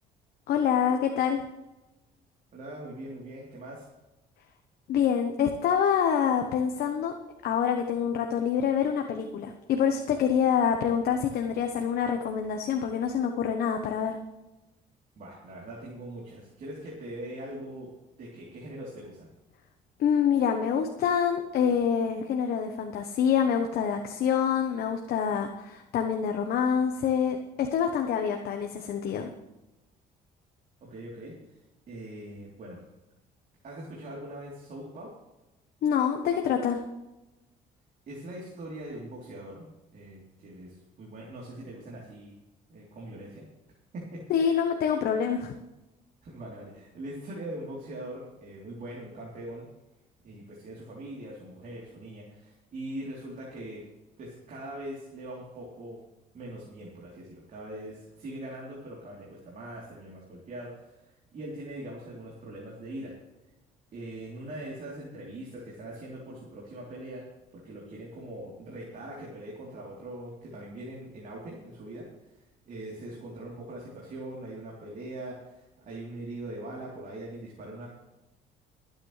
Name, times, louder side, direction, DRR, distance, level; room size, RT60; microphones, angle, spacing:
voice 1, 0.5-1.4 4.9-7.1 7.4-14.2 20.0-29.3 35.8-36.8 44.3-45.5, left 7 dB, 65° left, 4 dB, 1.1 m, -26 dB
voice 2, 2.5-3.8 15.2-17.9 18.2-19.3 30.9-31.4 31.9-32.8 33.6-35.1 38.1-42.3 42.7-43.5 43.9-44.5 46.2-49.6 50.2-53.8 54.2-56.0 56.3-63.1 63.9-67.2 67.6-72.1 72.7-77.9, right 1 dB, 50° right, -5 dB, 3.6 m, -41 dB
23.5 x 9.0 x 3.3 m, 1.0 s
cardioid pair, 110°, 17 cm